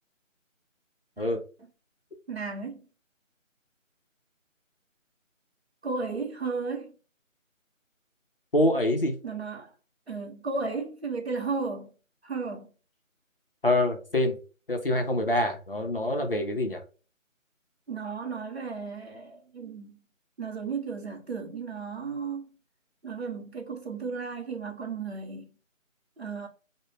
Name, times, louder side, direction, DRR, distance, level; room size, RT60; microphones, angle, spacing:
voice 1, 2.3-2.8 5.8-6.9 9.2-9.7 10.1-11.9 12.2-12.7 17.9-20.0 20.4-22.5 23.0-25.5 26.2-26.5, right 4 dB, 50° right, 0.9 m, -34 dB
voice 2, 8.5-9.1 13.6-14.4 14.7-16.8, left 1 dB, 45° left, 0.5 m, -25 dB
2.3 x 2.1 x 3.2 m
figure-of-eight pair, 160°, 40 cm